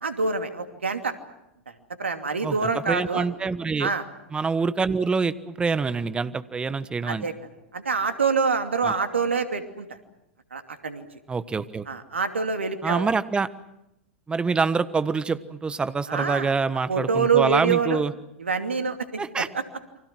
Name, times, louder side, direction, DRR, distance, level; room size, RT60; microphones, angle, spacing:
voice 1, 0.0-1.1 2.0-3.3 3.8-4.0 7.0-7.3 7.7-9.9 10.5-11.1 11.9-13.1 16.1-16.5 16.9-18.0 18.4-19.6, right 5 dB, 80° right, 7 dB, 2.7 m, -26 dB
voice 2, 2.4-3.9 4.3-7.3 8.8-9.0 11.3-11.9 12.8-13.5 14.3-18.1 19.2-19.5, right 4 dB, 15° right, 14 dB, 1.2 m, -26 dB
29.5 x 25.0 x 6.1 m, 0.86 s
figure-of-eight pair, 95°, 6 cm